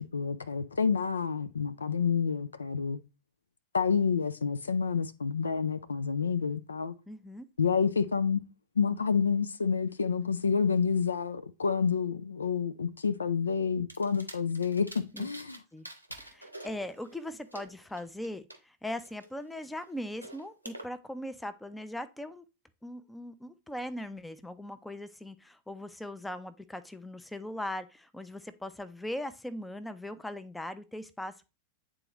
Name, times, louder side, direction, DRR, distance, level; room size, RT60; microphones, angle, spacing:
voice 1, 0.1-3.0 3.7-6.9 7.6-8.4 8.8-15.6, left 6 dB, 75° left, 0.4 m, -29 dB
voice 2, 7.1-7.5 15.1-15.3 15.7-15.9 16.2-22.4 22.8-31.5, left 1 dB, 5° left, 0.5 m, -40 dB
sound 1, 13.9-15.6 15.8-18.6 19.0-20.8, right 1 dB, 90° right, 0.8 m, -48 dB
8.8 x 3.8 x 3.0 m
figure-of-eight pair, 90°, 0 cm